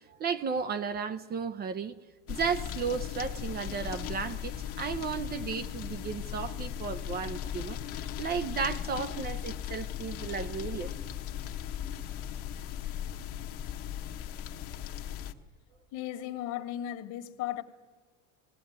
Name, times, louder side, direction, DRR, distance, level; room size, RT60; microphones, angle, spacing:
voice 1, 0.1-2.0 2.3-7.8 8.2-10.9, right 6 dB, 25° right, 0.6 m, -34 dB
sound 1, 2.3-15.3, left 10 dB, 40° left, 1.0 m, -37 dB
voice 2, 15.9-17.6, left 12 dB, 55° left, 1.6 m, -36 dB
19.5 x 18.0 x 9.3 m
cardioid pair, 155°, 35 cm